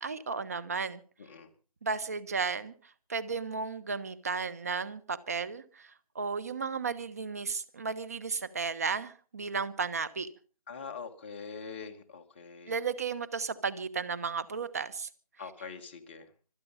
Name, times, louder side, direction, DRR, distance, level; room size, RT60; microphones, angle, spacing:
voice 1, 0.0-1.0 1.8-2.7 3.1-10.3 12.7-15.1, right 5 dB, 25° right, 12 dB, 1.0 m, -34 dB
voice 2, 1.2-1.5 10.7-12.8 15.4-16.3, left 5 dB, 20° left, 4 dB, 1.3 m, -43 dB
25.5 x 8.6 x 5.6 m, 0.38 s
figure-of-eight pair, 170°, 20 cm